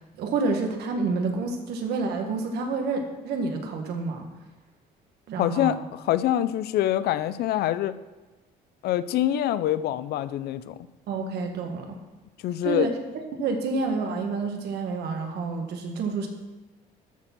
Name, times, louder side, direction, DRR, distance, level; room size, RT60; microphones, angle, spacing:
voice 1, 0.0-4.3 5.3-5.8 11.1-12.0 12.6-12.9 13.3-16.3, right 3 dB, 75° right, 3 dB, 1.7 m, -28 dB
voice 2, 5.4-7.9 8.8-10.9 12.4-12.9, left 12 dB, 70° left, 15 dB, 0.5 m, -25 dB
13.0 x 4.4 x 6.0 m, 1.2 s
cardioid pair, 110°, 17 cm